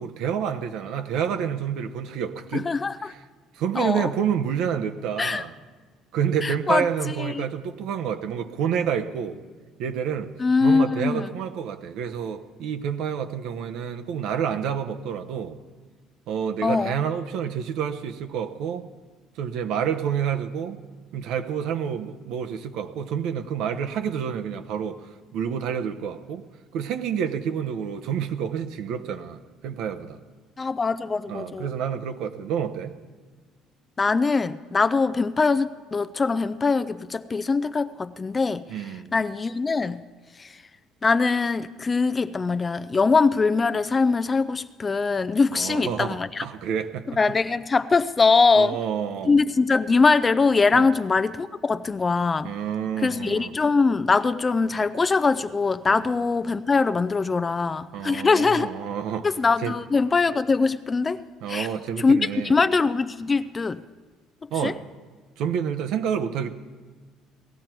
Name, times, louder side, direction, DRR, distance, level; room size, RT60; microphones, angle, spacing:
voice 1, 0.0-2.7 3.0-3.2 3.6-5.5 6.1-9.4 9.8-10.3 10.6-15.6 16.3-18.9 19.4-20.8 21.1-26.5 26.7-30.2 31.3-32.9 38.7-39.1 45.5-47.1 48.5-49.4 50.7-50.9 52.4-53.5 55.9-56.0 57.9-59.3 59.6-59.7 61.4-62.5 64.5-64.8 65.4-66.5, right 8 dB, 70° right, 7 dB, 1.0 m, -28 dB
voice 2, 2.5-3.1 3.8-4.1 5.2-5.4 6.4-7.5 10.4-11.3 16.6-17.0 30.6-31.7 34.0-38.6 39.1-40.0 40.4-40.6 41.0-46.5 47.2-48.8 49.2-52.5 53.0-58.7 59.2-61.2 61.5-61.7 62.0-63.8 64.6-64.7, left 4 dB, 20° left, 14 dB, 0.4 m, -22 dB
18.0 x 14.5 x 4.5 m, 1.4 s
cardioid pair, 130°, 0 cm